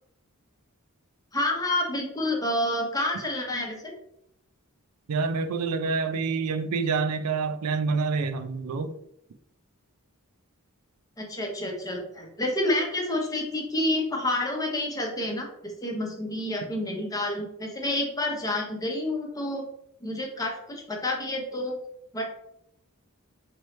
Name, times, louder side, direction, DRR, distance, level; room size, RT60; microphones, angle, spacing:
voice 1, 1.3-3.9 11.2-19.6 20.0-21.8 22.1-22.2, left 1 dB, 15° left, 1 dB, 0.8 m, -29 dB
voice 2, 5.1-8.9, right 4 dB, 90° right, 10 dB, 0.4 m, -27 dB
4.4 x 3.0 x 3.2 m, 0.75 s
head